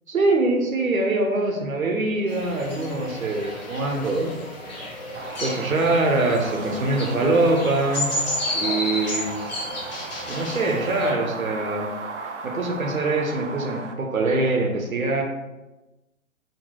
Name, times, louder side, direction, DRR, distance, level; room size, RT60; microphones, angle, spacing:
voice 1, 0.1-4.4 5.4-8.2 8.5-9.3 10.3-11.9 12.2-15.2, right 2 dB, 75° right, 2 dB, 0.9 m, -23 dB
sound 1, 2.3-11.1, left 1 dB, 30° left, 1.1 m, -32 dB
sound 2, 5.1-13.9, right 4 dB, 55° right, 0.5 m, -36 dB
3.9 x 2.3 x 3.7 m, 1.0 s
figure-of-eight pair, 135°, 42 cm